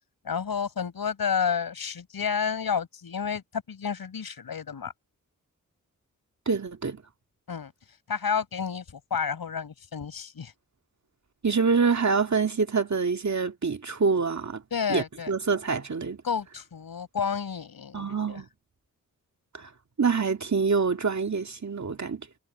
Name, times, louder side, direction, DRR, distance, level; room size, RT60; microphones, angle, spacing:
voice 1, 0.2-4.9 7.5-7.7 8.1-10.5 14.7-15.3 16.2-18.4, left 6 dB, 85° left, 6.5 m, -30 dB
voice 2, 6.5-7.0 11.4-14.6 14.9-16.2 17.9-18.5 19.5-19.7 20.0-22.3, right 5 dB, 50° right, 2.1 m, -26 dB
cardioid pair, 40°, 35 cm